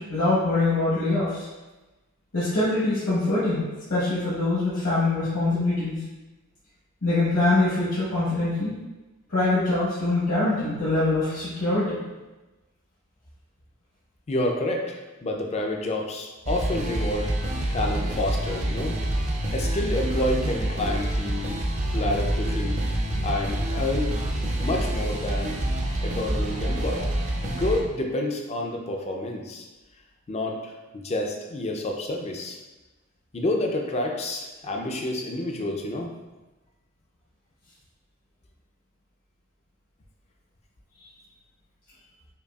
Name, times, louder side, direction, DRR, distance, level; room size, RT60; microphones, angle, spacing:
voice 1, 0.0-1.5 2.3-3.6 3.9-6.0 7.0-8.7 9.3-12.0 23.1-23.3, left 2 dB, 60° left, -10 dB, 0.9 m, -24 dB
voice 2, 14.3-17.3 17.7-19.0 19.5-21.6 21.9-22.8 23.2-24.1 24.6-25.6 26.0-27.1 27.4-29.7 30.3-32.6 33.3-36.1, left 1 dB, 30° left, 1 dB, 0.4 m, -29 dB
sound 1, 16.5-27.8, right 1 dB, 30° right, 0.4 m, -27 dB
5.2 x 2.3 x 2.3 m, 1.1 s
head